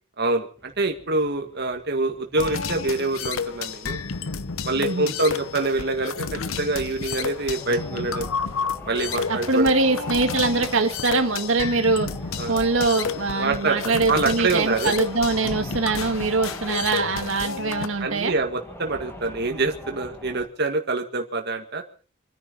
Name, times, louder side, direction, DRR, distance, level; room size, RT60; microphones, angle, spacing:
voice 1, 0.2-4.0 4.6-8.3 8.8-9.7 12.4-12.6 13.4-14.9 18.0-21.8, right 3 dB, 55° right, 4 dB, 1.9 m, -25 dB
sound 1, 0.6-20.5, equal, 10° left, 2.0 m, -43 dB
sound 2, 2.4-17.9, left 5 dB, 85° left, 0.9 m, -31 dB
voice 2, 4.8-5.1 9.3-12.1 12.5-18.3, right 3 dB, 70° right, 5 dB, 1.9 m, -23 dB
26.0 x 10.5 x 5.4 m, 0.40 s
head